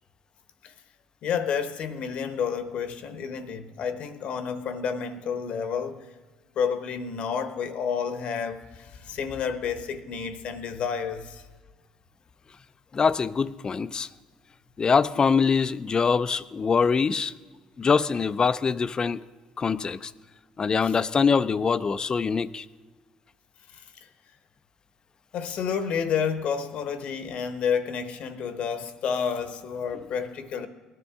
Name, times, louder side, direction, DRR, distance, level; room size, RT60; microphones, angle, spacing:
voice 1, 1.2-6.1 6.6-11.4 20.9-21.0 25.3-30.7, left 7 dB, 65° left, 1.0 m, -30 dB
voice 2, 12.9-14.1 14.8-17.3 17.8-19.2 19.6-20.1 20.6-22.7, left 5 dB, 35° left, 0.4 m, -23 dB
19.0 x 11.0 x 3.5 m
supercardioid pair, 75°, 2 cm